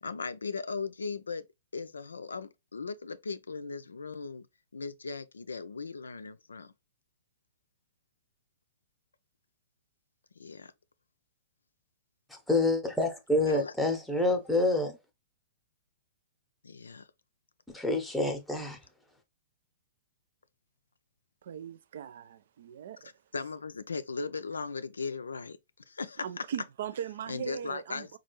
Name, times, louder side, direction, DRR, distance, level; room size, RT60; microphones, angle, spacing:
voice 1, 0.0-1.5 1.7-4.5 4.7-6.7 10.4-10.7 13.5-13.7 16.6-17.1 23.3-25.6 25.9-26.4 27.3-28.2, left 4 dB, 75° left, 0.4 m, -38 dB
voice 2, 12.3-15.0 17.7-18.8, left 2 dB, ahead, 0.8 m, -27 dB
voice 3, 21.4-23.1 26.2-28.2, right 9 dB, 55° right, 0.3 m, -39 dB
4.1 x 2.4 x 3.0 m
figure-of-eight pair, 110°, 0 cm